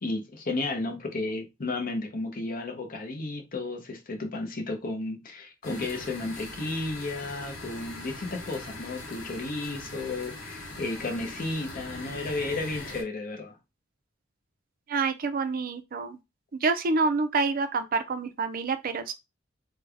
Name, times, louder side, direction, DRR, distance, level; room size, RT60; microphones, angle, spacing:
voice 1, 0.0-13.6, left 2 dB, 45° left, 0.7 m, -33 dB
sound 1, 5.6-13.0, left 2 dB, 85° left, 1.0 m, -41 dB
voice 2, 14.9-16.2 16.5-19.1, right 4 dB, 45° right, 0.4 m, -27 dB
3.3 x 2.2 x 3.4 m
head